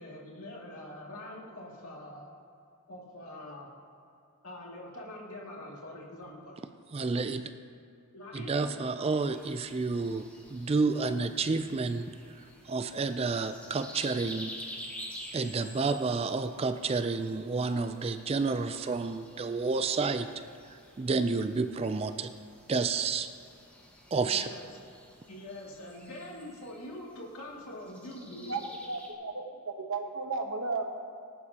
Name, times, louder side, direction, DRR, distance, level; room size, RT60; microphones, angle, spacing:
voice 1, 0.0-2.3 2.9-3.7 4.4-6.6 8.1-8.7 24.2-24.7 25.3-28.6, left 1 dB, 75° left, -3 dB, 2.4 m, -44 dB
voice 2, 6.9-7.5 8.3-12.1 12.4-14.5 15.3-20.3 21.0-22.3 22.7-23.3 24.1-24.5, right 4 dB, 25° right, 9 dB, 0.3 m, -30 dB
sound 1, 9.3-29.1, equal, 5° left, 1.4 m, -50 dB
voice 3, 28.9-30.9, right 3 dB, 65° right, 4 dB, 1.1 m, -34 dB
19.0 x 11.0 x 2.9 m, 2.4 s
head